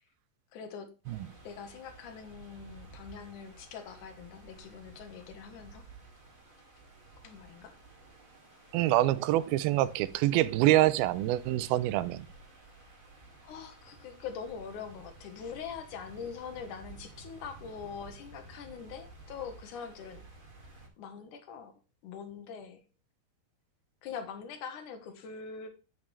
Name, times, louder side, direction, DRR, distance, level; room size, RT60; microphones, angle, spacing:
voice 1, 0.5-0.9 1.4-5.8 7.2-7.7 13.4-20.2 21.0-21.7 22.0-22.8 24.0-25.7, left 6 dB, 65° left, 7 dB, 2.4 m, -43 dB
sound 1, 1.0-20.9, right 3 dB, 25° right, 1.2 m, -53 dB
voice 2, 8.7-12.3, right 15 dB, 80° right, 15 dB, 2.4 m, -26 dB
10.5 x 8.7 x 3.3 m, 0.32 s
omnidirectional pair, 4.5 m